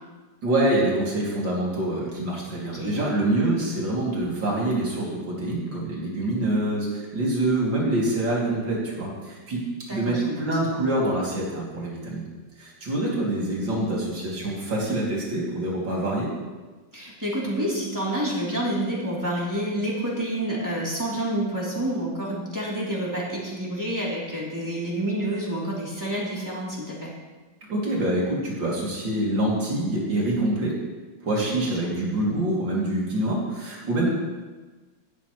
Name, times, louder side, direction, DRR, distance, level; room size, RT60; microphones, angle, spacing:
voice 1, 0.4-9.6 9.9-12.2 12.6-16.3 27.7-30.8 31.2-34.1, right 1 dB, 85° right, -5 dB, 3.5 m, -25 dB
voice 2, 2.6-3.0 6.2-6.5 9.9-10.6 16.9-27.1 31.5-32.0, right 1 dB, 10° right, -6 dB, 3.2 m, -29 dB
15.5 x 11.5 x 3.2 m, 1.3 s
omnidirectional pair, 2.0 m